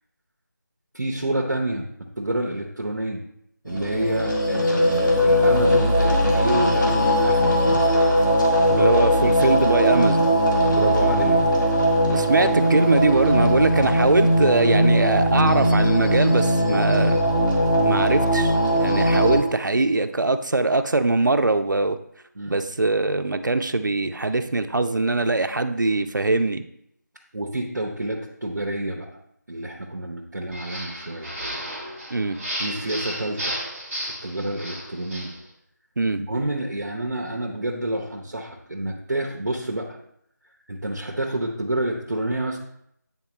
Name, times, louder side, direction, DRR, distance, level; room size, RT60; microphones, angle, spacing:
voice 1, 0.9-1.9 2.2-3.2 3.6-8.0 10.6-11.4 22.3-22.6 27.3-29.1 29.5-31.3 32.6-33.6 34.0-35.3 36.2-40.0 40.7-42.6, right 1 dB, 70° right, -1 dB, 0.9 m, -28 dB
sound 1, 3.7-19.4, equal, 85° left, 1.6 m, -19 dB
voice 2, 8.7-10.3 12.1-17.2 17.8-22.0 22.5-26.6 32.1-32.4 36.0-36.2, right 2 dB, 90° right, 9 dB, 0.5 m, -22 dB
sound 2, 30.5-35.4, equal, 5° right, 1.0 m, -33 dB
9.2 x 3.7 x 3.0 m, 0.75 s
figure-of-eight pair, 170°, 10 cm